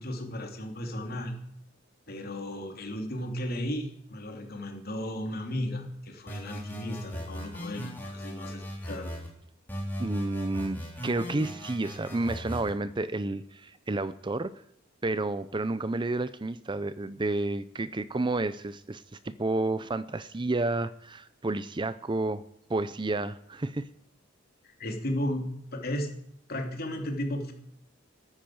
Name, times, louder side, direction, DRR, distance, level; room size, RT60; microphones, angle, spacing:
voice 1, 0.0-1.3 2.1-9.1 24.6-26.1 26.5-27.5, left 1 dB, 50° left, 2 dB, 3.1 m, -35 dB
sound 1, 6.3-9.3 9.7-12.7, equal, 10° left, 3.7 m, -38 dB
voice 2, 10.0-14.5 15.0-22.4 22.7-23.9, right 2 dB, 25° right, 14 dB, 0.5 m, -30 dB
13.5 x 10.0 x 7.8 m, 0.76 s
head